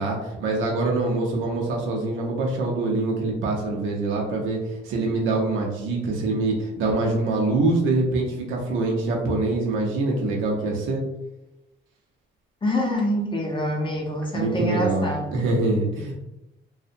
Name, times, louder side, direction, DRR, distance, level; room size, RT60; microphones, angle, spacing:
voice 1, 0.0-4.6 4.8-11.0 14.3-16.2, right 2 dB, 85° right, -1 dB, 0.6 m, -24 dB
voice 2, 12.6-15.4, equal, 25° left, -2 dB, 0.6 m, -26 dB
2.6 x 2.0 x 2.5 m, 0.94 s
cardioid pair, 90°, 20 cm